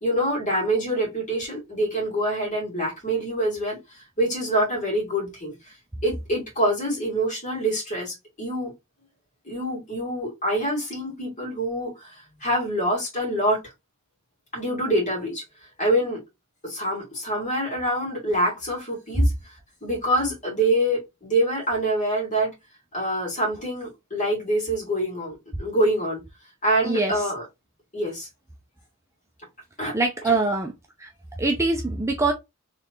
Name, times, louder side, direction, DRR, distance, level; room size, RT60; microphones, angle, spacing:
voice 1, 0.0-5.5 6.0-8.7 9.5-13.6 14.5-15.4 15.8-16.2 16.6-19.3 19.8-22.5 22.9-26.2 26.6-27.5 27.9-28.3 29.8-30.0 30.2-30.4, right 1 dB, 35° left, 2.5 m, -25 dB
voice 2, 29.9-30.7 31.4-32.3, right 3 dB, 15° right, 0.5 m, -23 dB
3.7 x 3.2 x 3.0 m
head